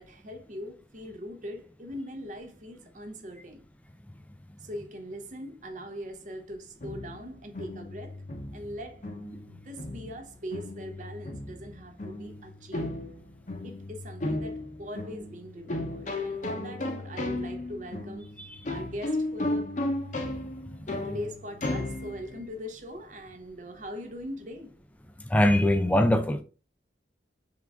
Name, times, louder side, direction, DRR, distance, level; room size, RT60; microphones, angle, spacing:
voice 1, 0.0-3.6 4.6-8.2 8.5-9.1 9.5-12.9 13.6-18.4 18.6-19.8 21.0-24.8, equal, 45° right, 0.7 m, -41 dB
sound 1, 6.8-22.5, left 2 dB, 40° left, 0.7 m, -35 dB
voice 2, 25.2-26.4, left 1 dB, 10° left, 0.4 m, -22 dB
3.7 x 3.4 x 3.5 m
head